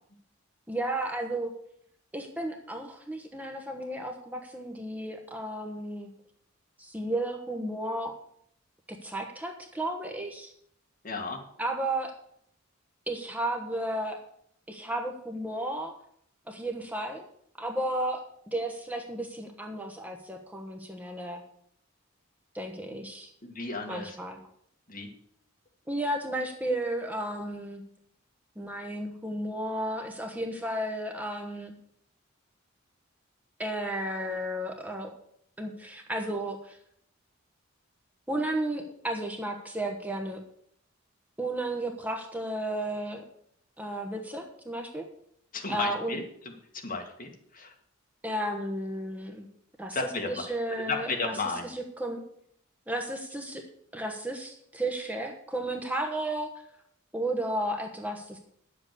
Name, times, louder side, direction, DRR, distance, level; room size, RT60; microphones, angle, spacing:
voice 1, 0.7-1.5 2.1-6.1 6.8-8.2 9.0-10.5 11.6-12.1 13.1-14.2 14.7-15.9 16.5-17.2 17.6-21.4 22.5-23.3 23.9-24.4 25.9-27.8 28.6-31.7 33.6-35.1 35.6-36.8 38.3-40.4 41.4-43.2 43.8-45.1 45.7-46.2 48.2-49.5 49.8-50.0 50.3-51.3 51.6-52.2 52.9-53.6 53.9-56.5 57.1-58.4, right 1 dB, 10° right, 2 dB, 1.0 m, -33 dB
voice 2, 11.0-11.4 22.9-23.0 23.4-24.2 24.9-25.1 45.5-47.7 49.9-50.4 50.7-51.7, left 3 dB, 40° left, 2 dB, 1.9 m, -34 dB
10.0 x 7.6 x 6.7 m, 0.68 s
head